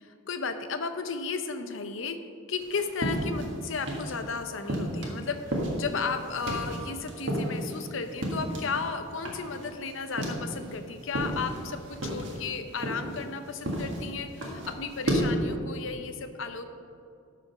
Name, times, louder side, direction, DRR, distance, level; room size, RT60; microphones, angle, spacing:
voice 1, 0.0-2.2 2.5-16.6, left 5 dB, 65° left, 8 dB, 0.7 m, -34 dB
sound 1, 2.6-4.3 4.7-8.8 9.1-10.8 11.1-15.3, equal, 60° right, 1.8 m, -33 dB
12.5 x 5.1 x 5.7 m, 2.4 s
head